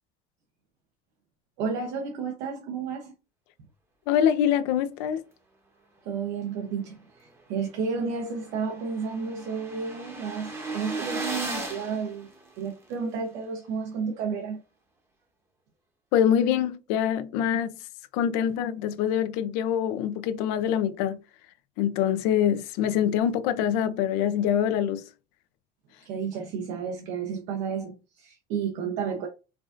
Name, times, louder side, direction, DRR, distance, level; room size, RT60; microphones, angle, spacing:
voice 1, 1.6-3.1 6.0-12.3 12.6-14.6 26.0-29.3, right 5 dB, 80° right, 0.8 m, -32 dB
voice 2, 4.1-5.2 16.1-17.7 18.1-21.2 21.8-25.0, left 9 dB, 90° left, 0.5 m, -24 dB
sound 1, 7.4-7.5 7.8-7.9 8.0-12.9, right 2 dB, 15° right, 0.7 m, -37 dB
4.6 x 2.5 x 2.5 m
cardioid pair, 165°, 21 cm